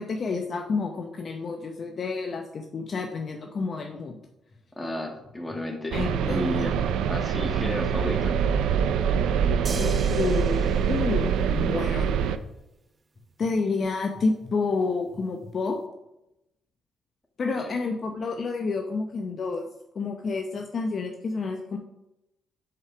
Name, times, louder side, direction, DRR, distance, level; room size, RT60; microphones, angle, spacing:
voice 1, 0.0-4.2 5.9-6.4 9.8-12.1 13.4-15.8 17.4-19.6 19.9-21.8, left 4 dB, 50° left, 3 dB, 0.7 m, -29 dB
sound 1, 4.2-4.6 5.1-5.6 6.1-6.6 7.1-7.5 8.1-8.5 9.1-9.5 10.1-10.4 11.1-11.5 12.1-12.5 13.2-13.5 14.1-14.5 15.1-15.5, left 3 dB, 30° left, 2.0 m, -46 dB
voice 2, 4.7-6.0 6.2-6.7 7.1-8.4 17.6-17.7, left 1 dB, 15° left, 2 dB, 1.7 m, -32 dB
sound 2, 5.9-12.4, right 7 dB, 85° right, 0.4 m, -24 dB
sound 3, 9.6-12.1 13.8-13.9, right 4 dB, 30° right, 0.7 m, -40 dB
5.8 x 4.8 x 5.9 m, 0.88 s
cardioid pair, 90°, 0 cm